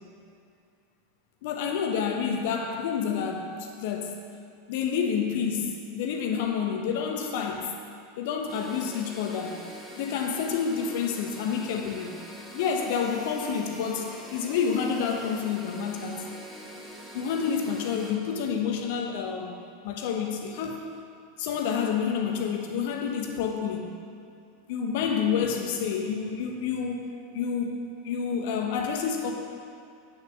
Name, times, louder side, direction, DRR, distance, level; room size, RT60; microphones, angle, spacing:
voice 1, 1.4-4.2 4.7-7.7 8.2-9.6 10.0-12.1 12.5-16.2 17.1-19.6 19.8-20.8 21.4-23.9 24.7-27.0 27.3-29.3, left 6 dB, 60° left, 3 dB, 1.2 m, -29 dB
sound 1, 8.5-18.1, equal, 5° right, 2.3 m, -43 dB
8.7 x 6.7 x 6.2 m, 2.5 s
figure-of-eight pair, 85°, 0 cm